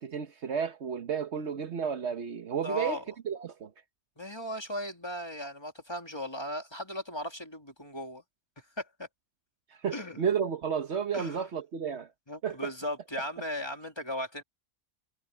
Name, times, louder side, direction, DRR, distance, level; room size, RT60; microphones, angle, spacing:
voice 1, 0.0-3.7 9.7-12.1 12.4-12.7, right 7 dB, 75° right, 1.4 m, -32 dB
voice 2, 2.6-3.0 4.2-8.2 8.8-9.1 9.9-10.2 11.1-11.4 12.3-14.4, equal, 20° left, 2.6 m, -37 dB
omnidirectional pair, 1.2 m